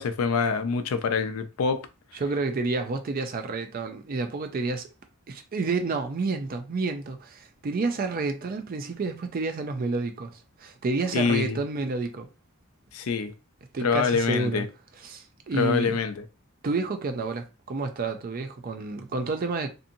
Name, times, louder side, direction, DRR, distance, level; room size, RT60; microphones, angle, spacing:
voice 1, 0.0-1.9 11.1-11.6 12.9-13.3 13.8-14.7 15.5-16.1, left 5 dB, 85° left, 0.4 m, -25 dB
voice 2, 2.1-4.9 5.3-12.3 13.7-14.6 15.0-16.0 16.6-19.7, right 3 dB, 40° right, 0.4 m, -30 dB
2.7 x 2.6 x 2.6 m
head